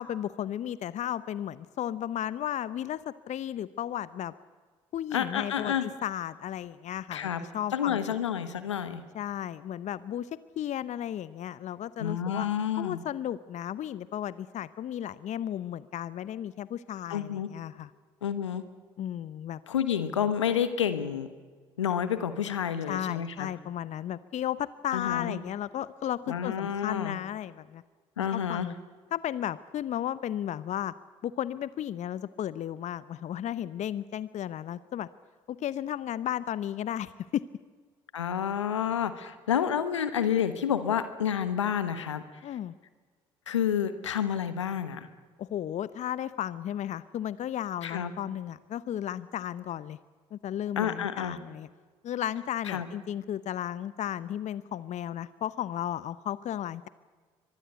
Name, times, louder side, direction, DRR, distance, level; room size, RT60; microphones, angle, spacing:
voice 1, 0.0-4.3 4.9-8.0 9.1-12.5 12.8-17.9 19.0-19.6 22.9-27.8 28.3-28.7 29.1-30.9 31.2-35.1 35.5-37.5 42.4-42.7 45.4-50.0 50.3-51.7 52.0-56.9, left 11 dB, 50° left, 17 dB, 0.8 m, -34 dB
voice 2, 5.1-5.9 7.1-7.4 7.7-9.0 12.0-13.0 17.1-17.5 18.2-18.6 19.7-21.3 21.8-23.5 24.9-25.4 26.3-27.2 28.2-28.7 38.1-42.2 43.5-45.1 47.8-48.1 50.8-51.4 52.6-52.9, left 9 dB, 90° left, 12 dB, 1.3 m, -29 dB
24.0 x 20.5 x 8.2 m, 1.5 s
hypercardioid pair, 50°, 15 cm